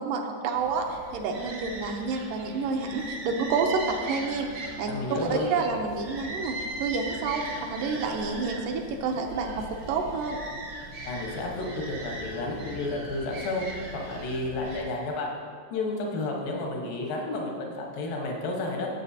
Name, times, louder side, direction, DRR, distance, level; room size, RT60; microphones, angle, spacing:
voice 1, 0.0-10.4, right 4 dB, 80° right, 3 dB, 2.2 m, -29 dB
sound 1, 0.5-14.8, right 2 dB, 60° right, 1.2 m, -39 dB
voice 2, 4.9-5.5 11.0-13.7 13.9-15.3 15.7-18.9, left 2 dB, 80° left, 0 dB, 2.9 m, -31 dB
14.0 x 7.5 x 2.7 m, 2.1 s
omnidirectional pair, 4.0 m